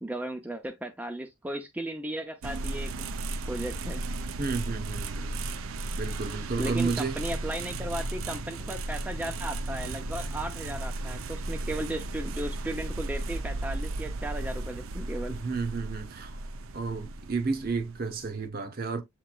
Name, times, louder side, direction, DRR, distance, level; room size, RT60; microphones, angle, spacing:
voice 1, 0.0-2.9 3.5-4.0 6.6-15.4, right 1 dB, 10° right, 0.4 m, -36 dB
sound 1, 2.4-18.5, right 2 dB, 80° right, 0.5 m, -35 dB
voice 2, 4.4-5.4 6.0-7.2 15.3-16.4 16.7-19.0, right 4 dB, 45° right, 0.7 m, -32 dB
7.6 x 3.0 x 2.2 m
head